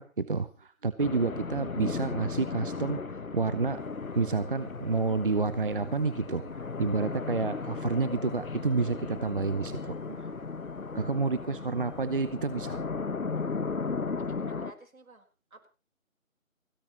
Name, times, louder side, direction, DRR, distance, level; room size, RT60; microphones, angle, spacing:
voice 1, 0.0-3.0 3.3-3.8 4.2-10.3 10.9-12.8, right 4 dB, 40° right, 15 dB, 0.7 m, -29 dB
sound 1, 1.0-14.7, left 4 dB, 75° left, 1.3 m, -36 dB
sound 2, 3.7-12.9, left 2 dB, 55° left, 7.4 m, -58 dB
voice 2, 11.6-11.9 14.2-15.3 15.5-15.7, right 2 dB, 80° right, 6 dB, 4.5 m, -51 dB
29.5 x 10.5 x 3.0 m, 0.32 s
figure-of-eight pair, 155°, 41 cm